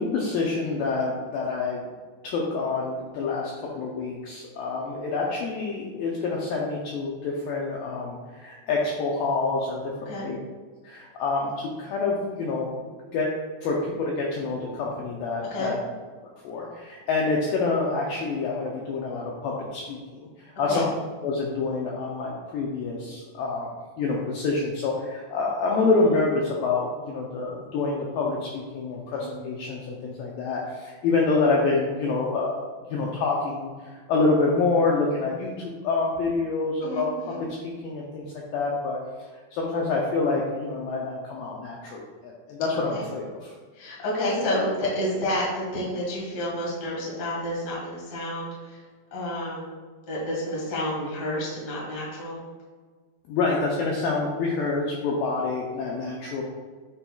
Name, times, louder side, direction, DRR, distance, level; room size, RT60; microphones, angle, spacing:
voice 1, 0.0-1.9 2.2-10.4 10.8-12.8 13.1-13.3 13.6-15.8 16.4-20.9 21.2-23.7 24.0-37.1 37.4-38.3 38.5-39.0 39.5-43.5 53.3-56.4, left 3 dB, 90° left, -2 dB, 2.0 m, -27 dB
voice 2, 36.8-37.4 42.9-43.0 43.7-48.8 49.1-52.4, left 1 dB, 50° left, -5 dB, 1.1 m, -30 dB
9.2 x 4.4 x 2.3 m, 1.5 s
omnidirectional pair, 4.9 m